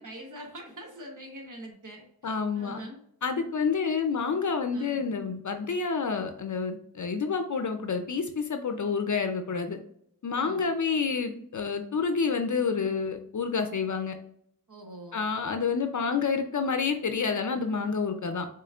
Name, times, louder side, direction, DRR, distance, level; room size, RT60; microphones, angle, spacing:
voice 1, 0.0-3.0 4.7-5.0 10.3-10.6 14.7-15.2, right 1 dB, 55° right, 0 dB, 1.2 m, -44 dB
voice 2, 2.2-2.8 3.2-9.8 10.2-14.2 15.1-18.5, left 5 dB, 55° left, 6 dB, 0.5 m, -28 dB
6.8 x 3.1 x 2.3 m, 0.71 s
wide cardioid pair, 85°, 37 cm